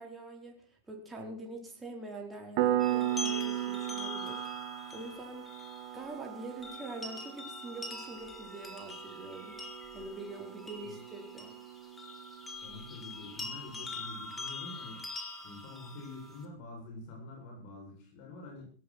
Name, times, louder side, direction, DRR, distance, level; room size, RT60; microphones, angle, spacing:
voice 1, 0.0-5.5 5.9-9.6 9.9-11.5, right 2 dB, 10° right, 0 dB, 4.6 m, -45 dB
Piano, 2.6-12.9, right 13 dB, 45° right, 1.5 m, -37 dB
sound 1, 2.8-16.5, left 3 dB, 10° left, 4.4 m, -44 dB
voice 2, 12.6-15.0 15.4-18.7, left 2 dB, 45° left, 0 dB, 7.7 m, -46 dB
18.0 x 17.0 x 4.6 m, 0.41 s
figure-of-eight pair, 90°, 0 cm